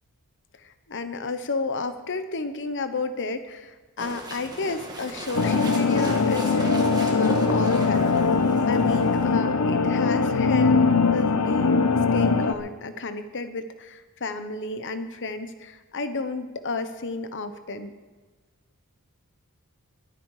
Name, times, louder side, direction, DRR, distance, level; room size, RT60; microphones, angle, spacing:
voice 1, 0.6-8.1 8.7-10.8 11.1-11.8 12.1-17.9, left 3 dB, 55° left, 10 dB, 1.1 m, -32 dB
sound 1, 4.0-9.3, right 1 dB, 20° right, 1.8 m, -36 dB
sound 2, 5.4-12.5, left 4 dB, 80° left, 0.9 m, -21 dB
20.5 x 9.4 x 4.9 m, 1.3 s
head